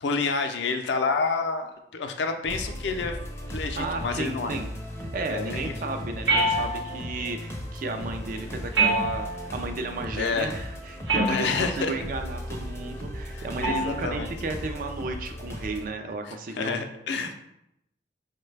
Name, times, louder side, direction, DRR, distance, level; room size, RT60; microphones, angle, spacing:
voice 1, 0.0-1.7 1.9-3.2 3.5-4.6 5.3-5.7 10.1-10.5 11.3-11.9 13.3-14.3 16.2-17.4, left 4 dB, 70° left, 5 dB, 0.4 m, -29 dB
sound 1, 2.4-15.9, equal, 15° left, 0.5 m, -37 dB
voice 2, 3.8-4.7 5.0-16.8, right 3 dB, 50° right, 6 dB, 0.4 m, -33 dB
sound 2, 6.3-7.1 8.7-9.6 11.1-11.8 13.6-14.0, right 2 dB, 80° right, 0.7 m, -25 dB
4.7 x 2.2 x 3.2 m, 0.80 s
head